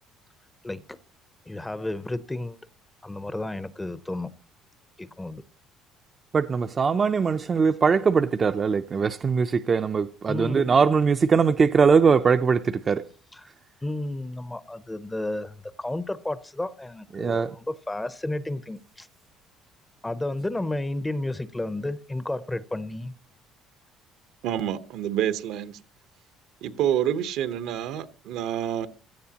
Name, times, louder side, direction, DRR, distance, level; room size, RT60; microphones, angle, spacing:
voice 1, 0.6-1.0 1.5-2.6 3.0-4.3 5.0-5.4 10.3-10.7 13.3-13.5 13.8-19.1 20.0-23.1, left 1 dB, 10° left, 0.6 m, -32 dB
voice 2, 6.3-13.0 17.1-17.6, right 5 dB, 30° right, 0.5 m, -21 dB
voice 3, 24.4-25.8 26.6-28.9, right 10 dB, 75° right, 0.9 m, -27 dB
16.5 x 13.5 x 2.9 m
cardioid pair, 130°, 0 cm